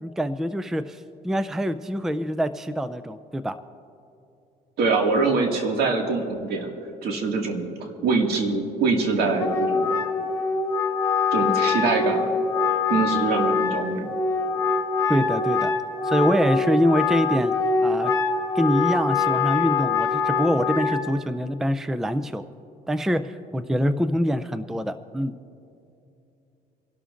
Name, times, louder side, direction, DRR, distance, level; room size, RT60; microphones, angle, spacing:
voice 1, 0.0-3.6 15.1-15.7 16.0-17.5 17.8-18.1 18.6-22.5 22.9-25.3, equal, ahead, 12 dB, 0.4 m, -24 dB
voice 2, 4.8-6.7 7.0-10.0 11.3-12.3 12.9-14.1, right 4 dB, 70° right, 2 dB, 2.1 m, -24 dB
Wind instrument woodwind instrument, 9.3-21.0, left 4 dB, 20° left, 1.5 m, -24 dB
28.5 x 12.0 x 2.6 m, 2.7 s
cardioid pair, 110°, 17 cm